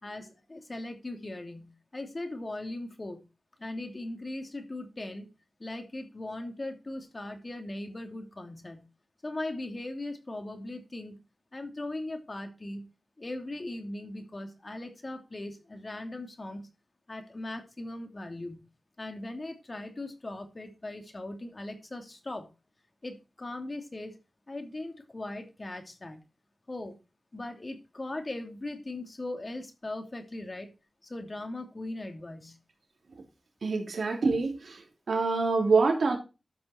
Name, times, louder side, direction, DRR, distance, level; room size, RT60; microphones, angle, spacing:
voice 1, 0.0-3.3 3.6-5.3 5.6-8.9 9.2-11.2 11.5-12.9 13.2-16.7 17.1-18.6 19.0-22.5 23.0-24.2 24.5-26.2 26.7-26.9 27.3-30.7 31.0-32.6, left 2 dB, 40° left, 5 dB, 2.9 m, -39 dB
voice 2, 33.6-34.8 35.1-36.2, right 4 dB, 80° right, 1 dB, 3.3 m, -25 dB
12.5 x 6.1 x 4.6 m, 0.29 s
cardioid pair, 50°, 0 cm